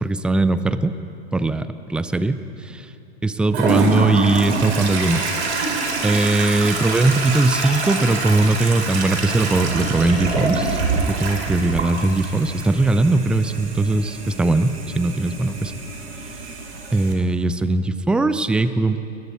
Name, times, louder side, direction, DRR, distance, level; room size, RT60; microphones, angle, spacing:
voice 1, 0.0-0.9 1.3-2.9 3.2-5.7 6.0-15.7 16.9-19.0, right 2 dB, 5° right, 12 dB, 0.4 m, -20 dB
Toilet flush, 3.5-17.1, right 3 dB, 70° right, 4.2 m, -26 dB
30.0 x 21.0 x 4.3 m, 2.7 s
hypercardioid pair, 115°, 33 cm